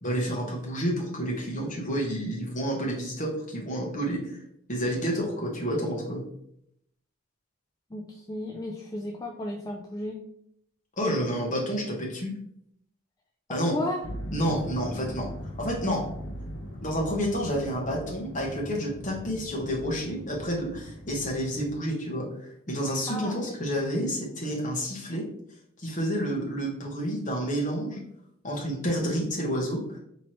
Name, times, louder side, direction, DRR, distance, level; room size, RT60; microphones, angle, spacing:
voice 1, 0.0-4.4 4.7-6.2 11.0-12.3 13.5-13.7 14.3-15.3 15.6-16.0 16.8-25.3 25.8-28.0 28.4-30.0, equal, 35° left, -2 dB, 1.0 m, -29 dB
voice 2, 7.9-10.2 13.5-14.0 23.1-23.4, left 1 dB, 20° left, 0 dB, 0.3 m, -34 dB
sound 1, 14.0-21.8, equal, 60° left, 0.7 m, -40 dB
4.4 x 3.0 x 3.0 m, 0.73 s
head